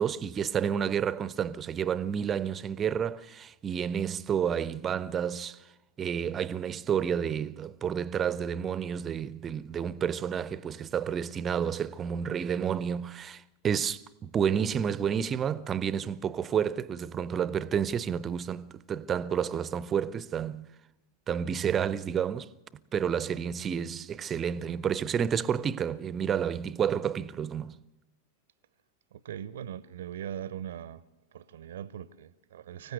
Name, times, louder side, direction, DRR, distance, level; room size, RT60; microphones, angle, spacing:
voice 1, 0.0-5.6 6.0-20.7 21.3-22.5 22.9-27.8, right 8 dB, 25° right, 0.7 m, -30 dB
voice 2, 29.1-31.0 31.3-32.9, right 9 dB, 60° right, 0.8 m, -40 dB
25.0 x 16.0 x 8.0 m
figure-of-eight pair, 90°, 0 cm